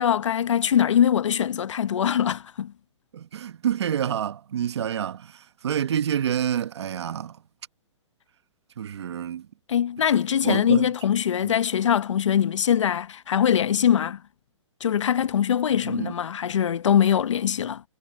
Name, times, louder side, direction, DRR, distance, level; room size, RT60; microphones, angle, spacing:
voice 1, 0.0-2.7 9.7-14.2 14.8-17.8, left 9 dB, 70° left, 0.9 m, -22 dB
voice 2, 3.1-5.3 5.6-7.3 8.8-9.4 10.4-10.9 11.4-11.5 15.8-16.1, right 9 dB, 60° right, 1.2 m, -27 dB
hypercardioid pair, 170°, 16 cm